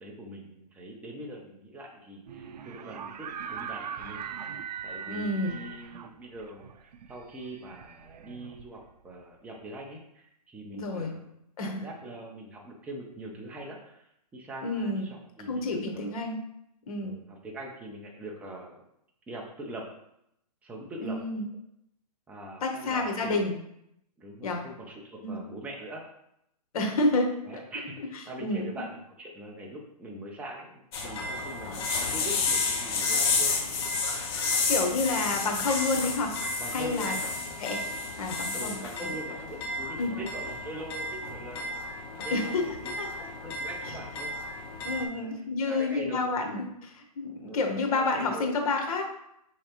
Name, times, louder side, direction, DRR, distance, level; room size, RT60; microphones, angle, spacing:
voice 1, 0.0-4.6 4.8-11.3 11.6-16.2 17.0-18.8 19.3-19.9 20.6-21.2 22.3-23.4 24.2-26.0 27.5-33.5 36.6-37.3 38.5-41.8 42.2-42.9 43.4-44.3 44.7-44.8 45.1-45.3 45.6-46.3 47.5-48.5, right 1 dB, 5° right, -1 dB, 0.5 m, -42 dB
sound 1, 2.3-9.1, right 7 dB, 80° right, 0.4 m, -41 dB
voice 2, 5.1-5.6 10.7-11.1 11.6-11.9 14.6-15.1 15.5-16.4 16.9-17.1 21.0-21.5 22.6-23.5 24.4-24.6 25.2-25.4 26.7-27.6 28.4-28.7 34.7-36.3 36.7-37.1 37.6-37.8 38.2-38.8 40.0-40.1 42.3-42.6 43.0-43.3 44.8-49.1, left 2 dB, 60° left, 3 dB, 1.0 m, -29 dB
sound 2, 30.9-45.0, left 3 dB, 40° left, 0.7 m, -31 dB
4.8 x 3.2 x 2.9 m, 0.78 s
hypercardioid pair, 145°, 21 cm